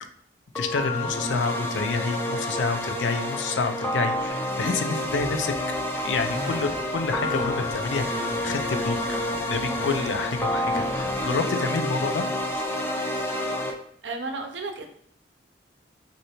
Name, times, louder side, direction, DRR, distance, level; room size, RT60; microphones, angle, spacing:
voice 1, 0.6-8.1 8.4-9.0 9.5-12.2 12.5-12.7, left 4 dB, 85° left, 8 dB, 0.4 m, -28 dB
sound 1, 0.6-13.7, left 1 dB, 15° left, 0.4 m, -29 dB
sound 2, 6.0-11.4, right 1 dB, 20° right, 0.7 m, -39 dB
voice 2, 14.0-14.9, right 3 dB, 85° right, 4 dB, 0.6 m, -33 dB
3.2 x 2.7 x 2.9 m, 0.66 s
head